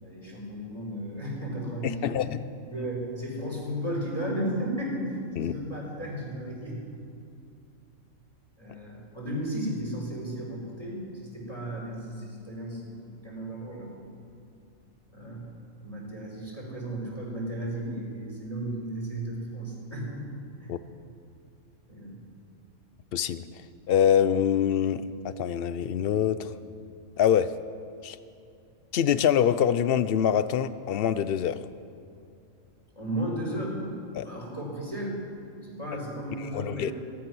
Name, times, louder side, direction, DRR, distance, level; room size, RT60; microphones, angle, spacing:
voice 1, 0.0-2.2 2.7-6.8 8.6-13.9 15.1-15.5 15.8-20.2 20.6-20.7 21.9-22.2 32.9-33.8 34.2-35.2 35.6-36.9, right 1 dB, 20° left, -4 dB, 4.8 m, -34 dB
voice 2, 2.0-2.4 5.4-5.5 20.7-20.8 23.1-23.4 23.9-26.5 27.2-27.5 28.0-28.2 28.9-31.6 34.1-34.3 36.4-36.9, left 9 dB, 60° left, 14 dB, 0.6 m, -24 dB
17.5 x 13.5 x 6.2 m, 2.5 s
omnidirectional pair, 1.5 m